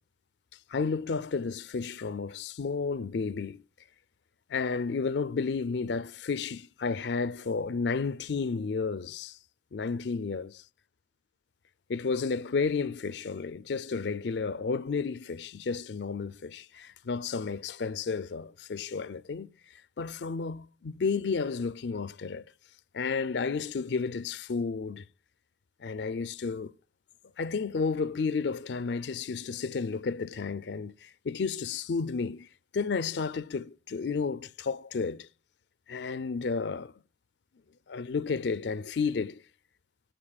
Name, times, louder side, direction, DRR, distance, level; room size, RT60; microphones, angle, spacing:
voice 1, 0.7-3.6 4.5-9.4 9.7-10.5 11.9-19.5 20.0-22.4 22.9-25.0 25.8-26.7 27.4-32.5 32.7-35.3 35.9-36.9 37.9-39.4, left 5 dB, 75° left, 0.5 m, -32 dB
14.5 x 13.5 x 2.3 m
head